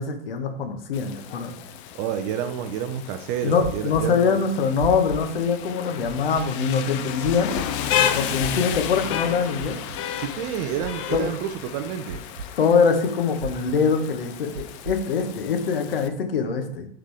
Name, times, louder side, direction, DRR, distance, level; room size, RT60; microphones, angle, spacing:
voice 1, 0.0-1.5 3.4-7.5 8.1-9.7 11.1-11.3 12.6-16.9, left 5 dB, 60° left, 7 dB, 1.3 m, -23 dB
Rain, 0.9-16.1, left 9 dB, 30° left, 0.5 m, -32 dB
voice 2, 1.9-4.4 10.2-12.2, right 9 dB, 25° right, 7 dB, 0.4 m, -29 dB
sound 1, 3.6-4.0 4.8-5.2 6.0-6.4 7.2-7.6 8.4-8.8 9.6-10.0 10.8-11.2 12.1-12.5 13.4-13.8 14.6-15.0, right 4 dB, 70° right, 0.7 m, -33 dB
11.0 x 3.8 x 3.4 m, 0.63 s
figure-of-eight pair, 110°, 32 cm